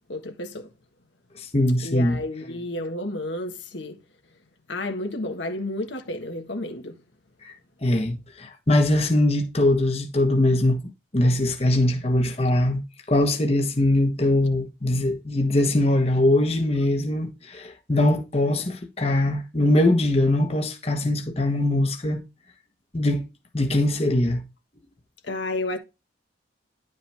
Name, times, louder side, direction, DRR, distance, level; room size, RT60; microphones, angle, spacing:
voice 1, 0.1-0.7 1.8-4.0 4.7-7.0 25.3-25.8, left 1 dB, 80° left, 1.6 m, -31 dB
voice 2, 1.4-2.2 7.4-7.5 7.8-10.8 11.1-12.8 13.1-22.2 22.9-23.2 23.5-24.4, left 1 dB, 35° left, 1.2 m, -22 dB
11.0 x 5.2 x 3.5 m
head